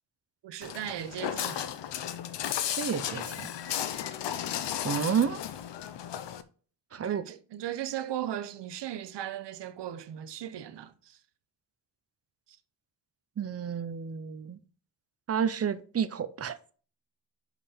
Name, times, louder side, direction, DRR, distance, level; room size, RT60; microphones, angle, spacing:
voice 1, 0.4-1.7 7.0-11.2, right 11 dB, 70° right, 0.8 m, -37 dB
Walk footsteps, 0.6-6.4, left 10 dB, 70° left, 0.7 m, -34 dB
voice 2, 2.7-3.5 4.8-5.4 6.9-7.2 13.4-14.6 15.3-16.6, right 7 dB, 35° right, 0.7 m, -30 dB
5.5 x 5.0 x 5.0 m
cardioid pair, 100°, 44 cm